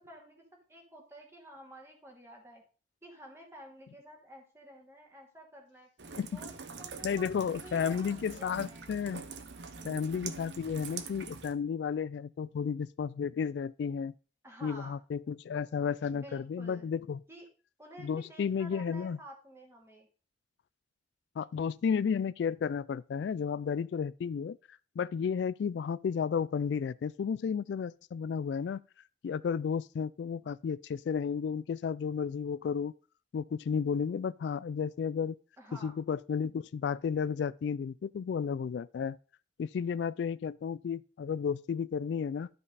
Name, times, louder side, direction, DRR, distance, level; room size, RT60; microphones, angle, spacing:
voice 1, 0.1-0.4 0.7-2.6 3.0-5.9 6.3-6.5 6.8-9.0 9.7-10.0 14.4-15.0 16.1-16.9 17.3-17.5 17.8-20.1 35.6-35.9, right 1 dB, 15° right, 2.5 m, -51 dB
Rain, 6.0-11.5, right 5 dB, 75° right, 1.0 m, -44 dB
voice 2, 7.0-9.2 9.8-14.1 14.6-17.2 18.0-19.2 21.4-28.8 29.2-32.9 33.3-35.4 35.8-39.2 39.6-42.5, left 6 dB, 75° left, 0.3 m, -33 dB
12.0 x 5.3 x 4.0 m
head